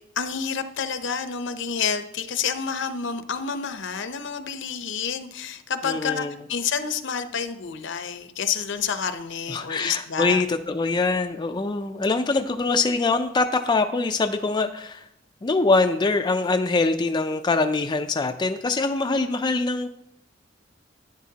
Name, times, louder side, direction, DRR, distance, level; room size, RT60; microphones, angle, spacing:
voice 1, 0.2-10.4, left 6 dB, 65° left, 9 dB, 0.7 m, -29 dB
voice 2, 5.8-6.3 9.5-15.0 15.4-19.9, left 3 dB, 20° left, 6 dB, 0.4 m, -23 dB
11.0 x 9.7 x 2.8 m, 0.77 s
head